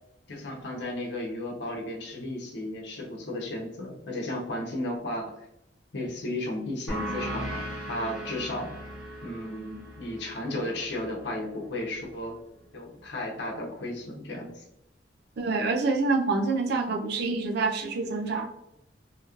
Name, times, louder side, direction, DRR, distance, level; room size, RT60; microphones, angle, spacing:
voice 1, 0.3-5.5 5.9-8.7 9.2-12.3 12.7-14.6, left 1 dB, 70° left, -2 dB, 0.8 m, -34 dB
sound 1, 6.9-12.1, right 1 dB, 5° right, 1.0 m, -38 dB
voice 2, 15.4-18.5, right 3 dB, 65° right, 2 dB, 0.4 m, -26 dB
2.9 x 2.8 x 2.4 m, 0.81 s
head